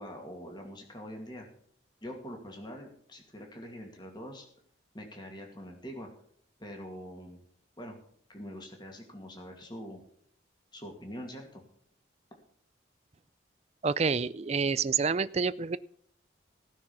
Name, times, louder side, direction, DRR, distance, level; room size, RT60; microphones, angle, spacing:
voice 1, 0.0-1.5 2.0-4.5 4.9-6.1 6.6-7.4 7.8-8.0 8.3-10.0 10.7-11.6, equal, 25° left, 2 dB, 2.4 m, -44 dB
voice 2, 13.8-15.8, right 5 dB, 35° right, 17 dB, 0.4 m, -28 dB
16.5 x 6.3 x 7.2 m, 0.64 s
head